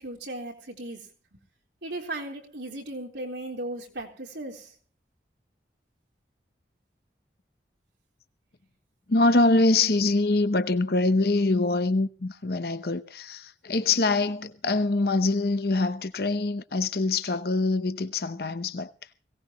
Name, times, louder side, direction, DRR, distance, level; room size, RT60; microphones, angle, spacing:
voice 1, 0.0-1.4 1.8-4.7, right 1 dB, 80° right, 3.8 m, -37 dB
voice 2, 9.1-18.9, left 2 dB, 55° left, 0.8 m, -24 dB
22.0 x 17.5 x 3.0 m
head